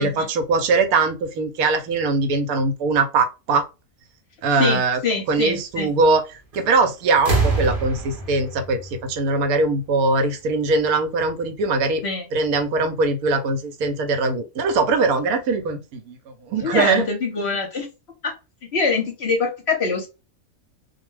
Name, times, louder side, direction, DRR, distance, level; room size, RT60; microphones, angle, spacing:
voice 1, 0.0-3.6 4.4-5.0 5.3-6.2 6.5-12.0 12.3-16.2 16.5-17.1, right 3 dB, 80° right, 1.1 m, -21 dB
voice 2, 4.5-5.9 12.0-12.3 16.6-17.9 18.2-18.3 18.7-20.1, left 4 dB, 55° left, 0.9 m, -24 dB
sound 1, 6.5-6.8 7.1-9.9 11.0-11.1, right 3 dB, 45° right, 0.8 m, -25 dB
2.5 x 2.1 x 3.1 m
omnidirectional pair, 1.5 m